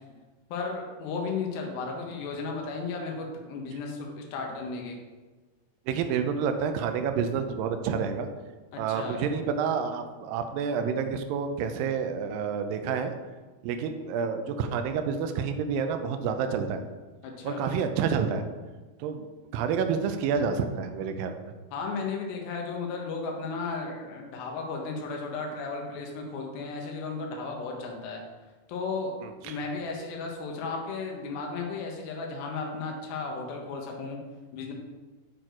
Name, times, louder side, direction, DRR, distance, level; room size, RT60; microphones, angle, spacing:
voice 1, 0.5-5.0 8.7-9.2 17.2-17.6 21.7-28.2 28.7-29.1 29.4-34.2 34.5-34.7, left 4 dB, 85° left, 1 dB, 2.9 m, -34 dB
voice 2, 5.9-8.3 8.8-13.1 13.6-16.8 17.4-18.5 19.0-19.3 19.5-21.4 29.2-29.6, right 6 dB, 85° right, 7 dB, 2.3 m, -29 dB
8.6 x 4.5 x 4.5 m, 1.3 s
omnidirectional pair, 4.2 m